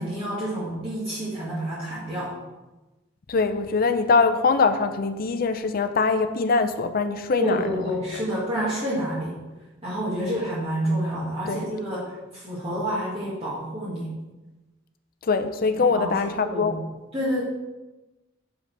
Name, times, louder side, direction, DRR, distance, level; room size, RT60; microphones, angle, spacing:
voice 1, 0.0-2.3 7.4-9.4 9.8-12.1 12.3-14.1 15.9-16.8 17.1-17.4, equal, 30° right, -9 dB, 1.7 m, -28 dB
voice 2, 3.3-7.7 10.2-10.4 11.5-11.6 15.3-16.8, left 4 dB, 45° left, 9 dB, 0.5 m, -23 dB
6.5 x 5.0 x 4.6 m, 1.1 s
head